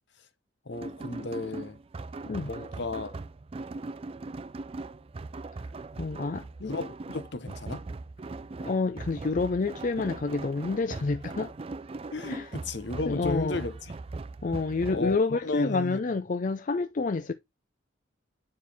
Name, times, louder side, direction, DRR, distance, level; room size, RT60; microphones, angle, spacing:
voice 1, 0.7-1.8 2.5-3.2 6.6-7.8 12.1-13.8 14.9-16.0, left 3 dB, 55° left, 0.9 m, -34 dB
sound 1, 0.7-15.2, right 3 dB, 30° right, 0.3 m, -40 dB
voice 2, 6.0-6.5 8.6-11.5 12.3-12.5 13.1-13.6 14.4-17.3, left 3 dB, 40° left, 0.4 m, -28 dB
9.5 x 4.4 x 3.4 m
head